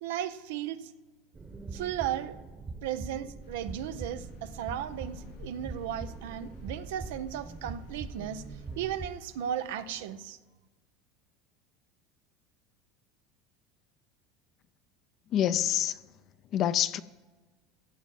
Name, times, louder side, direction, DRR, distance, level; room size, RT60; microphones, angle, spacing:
voice 1, 0.0-0.9 1.7-2.4 2.8-8.4 8.8-10.4, right 10 dB, 85° right, 11 dB, 0.7 m, -35 dB
sound 1, 1.3-9.1, right 3 dB, 20° right, 1.1 m, -42 dB
sound 2, 3.4-10.1, left 6 dB, 80° left, 4.2 m, -56 dB
voice 2, 15.3-16.0 16.5-17.0, left 10 dB, 45° left, 14 dB, 0.6 m, -26 dB
16.0 x 7.0 x 7.6 m, 1.3 s
supercardioid pair, 115°, 0 cm